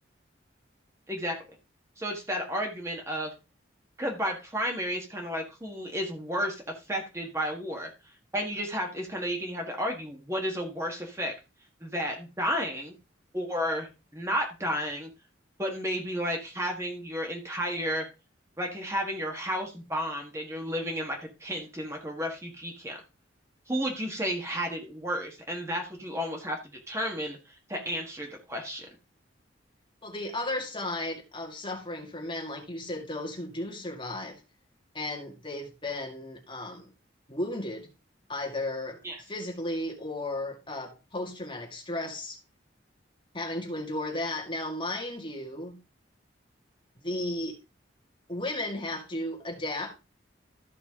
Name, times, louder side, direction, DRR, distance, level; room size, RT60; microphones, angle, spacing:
voice 1, 2.0-3.3 4.0-6.6 6.9-7.9 8.3-11.3 11.8-12.9 13.3-15.1 15.6-18.0 18.6-23.0 23.7-26.6 26.9-28.9 39.0-39.2, equal, 15° right, 1.6 m, -32 dB
voice 2, 30.0-34.4 34.9-36.9 37.3-37.9 38.3-39.0 39.3-42.4 43.3-45.8 47.0-47.6 48.3-49.9, left 1 dB, 25° left, 2.2 m, -34 dB
14.0 x 5.9 x 3.7 m
head